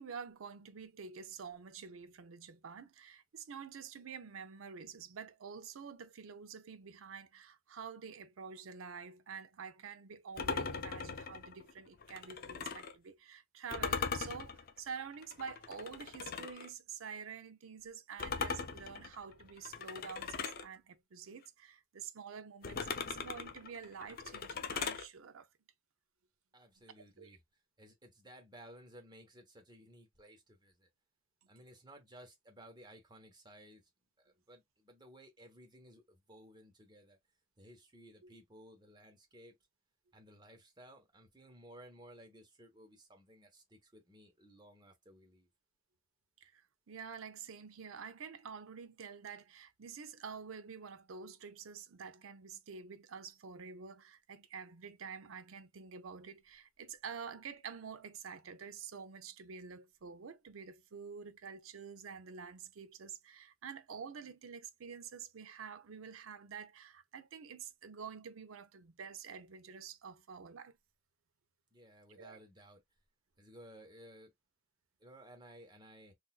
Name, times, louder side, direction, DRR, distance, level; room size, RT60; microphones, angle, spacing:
voice 1, 0.0-25.5 27.2-27.3 38.2-38.3 46.4-70.8 72.1-72.4, right 6 dB, 85° right, 0.5 m, -48 dB
sound 1, 10.4-13.0 13.7-16.7 18.2-20.7 22.6-25.1, left 5 dB, 45° left, 0.5 m, -40 dB
voice 2, 26.5-27.4 27.8-30.9 31.5-33.8 34.2-37.2 37.6-39.6 40.1-45.5 71.7-72.8 73.4-74.3 75.0-76.1, equal, 20° right, 1.0 m, -57 dB
3.9 x 2.5 x 2.3 m
head